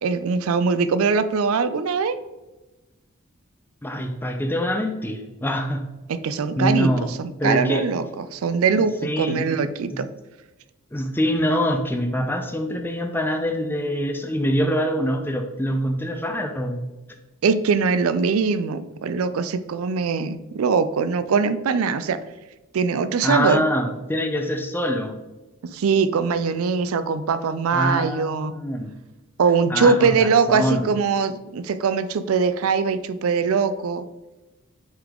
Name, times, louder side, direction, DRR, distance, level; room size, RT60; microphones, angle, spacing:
voice 1, 0.0-2.2 6.1-10.1 17.4-22.2 22.7-23.6 25.7-28.6 29.4-34.1, right 5 dB, 75° right, 13 dB, 0.4 m, -22 dB
voice 2, 3.8-5.9 6.6-7.1 7.4-7.8 9.0-9.6 9.9-10.0 10.9-16.8 23.2-25.2 27.7-28.9 29.7-30.9, equal, 10° left, 5 dB, 0.5 m, -24 dB
8.8 x 3.5 x 3.7 m, 1.1 s
head